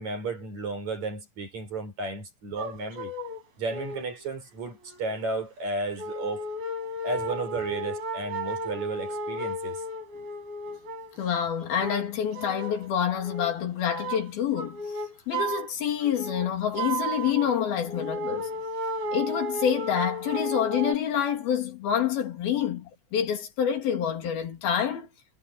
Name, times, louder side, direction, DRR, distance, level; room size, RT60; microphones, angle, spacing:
voice 1, 0.0-3.1 3.6-6.5 7.0-9.8, right 3 dB, 50° right, 6.5 m, -33 dB
sound 1, 2.6-3.4 3.7-4.1 4.9-5.0 6.0-11.2 11.6-12.9 13.2-13.5 13.8-14.3 14.6-15.7 16.0-21.0, right 1 dB, 90° right, 7.9 m, -34 dB
voice 2, 11.2-14.8 15.3-18.5 19.1-25.1, left 9 dB, 85° left, 4.9 m, -27 dB
omnidirectional pair, 4.2 m